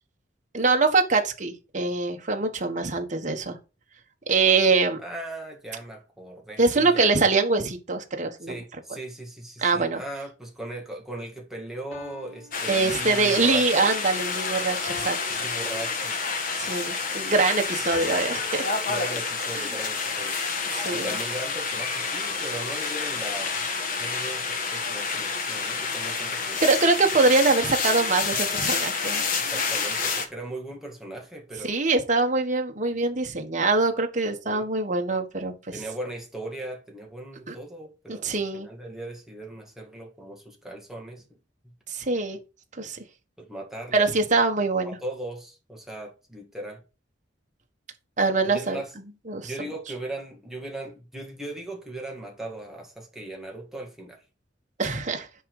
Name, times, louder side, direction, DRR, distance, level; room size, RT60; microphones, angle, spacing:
voice 1, 0.5-3.6 4.3-5.0 6.6-8.6 9.6-10.0 12.7-15.4 16.6-18.7 20.7-21.2 26.6-29.2 31.7-35.5 37.5-37.6 38.1-38.7 41.9-42.4 42.8-43.0 43.9-44.9 48.2-48.8 49.3-49.5 54.8-55.3, right 3 dB, 45° right, 1.4 m, -23 dB
voice 2, 5.0-7.1 8.4-13.9 15.3-16.2 18.9-20.3 20.9-23.7 24.0-26.6 29.4-31.8 34.5-34.7 35.7-41.2 41.6-41.7 43.4-44.1 44.8-46.8 48.4-48.9 49.4-54.2, right 1 dB, ahead, 1.8 m, -38 dB
sound 1, 11.9-13.5 14.8-16.5 17.9-19.5, left 4 dB, 85° left, 3.5 m, -45 dB
sound 2, 12.5-30.2, left 4 dB, 50° left, 1.3 m, -29 dB
9.9 x 3.8 x 4.9 m
head